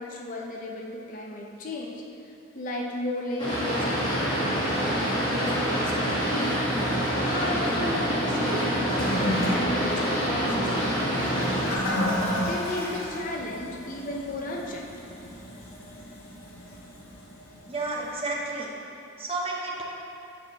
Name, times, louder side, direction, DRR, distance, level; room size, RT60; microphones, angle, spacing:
voice 1, 0.0-2.0 2.5-6.6 6.9-11.5 12.4-14.9, left 1 dB, 40° left, -1 dB, 0.6 m, -34 dB
Boat Water vehicle, 3.4-11.8, equal, 20° left, 1.3 m, -26 dB
Toilet flush, 8.9-18.1, left 1 dB, 80° left, 1.2 m, -33 dB
voice 2, 17.7-18.7 19.2-19.8, right 2 dB, 30° right, -3 dB, 0.6 m, -31 dB
7.0 x 6.1 x 2.9 m, 2.7 s
head